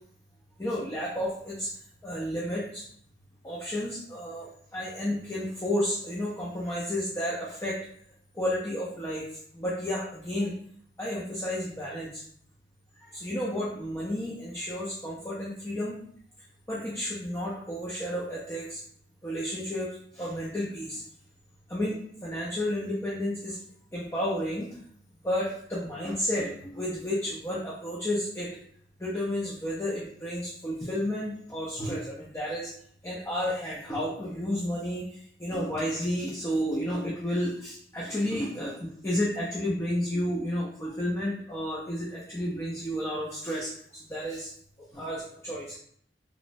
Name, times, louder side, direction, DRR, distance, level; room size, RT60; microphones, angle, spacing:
voice 1, 0.6-1.7 2.0-2.8 3.4-7.8 8.3-9.3 9.5-10.5 11.0-12.2 13.0-16.0 16.7-18.8 19.2-21.0 21.7-23.6 23.9-24.7 25.2-28.5 29.0-32.7 33.0-44.5 44.9-45.8, equal, 15° left, -6 dB, 0.4 m, -31 dB
2.9 x 2.1 x 2.5 m, 0.63 s
head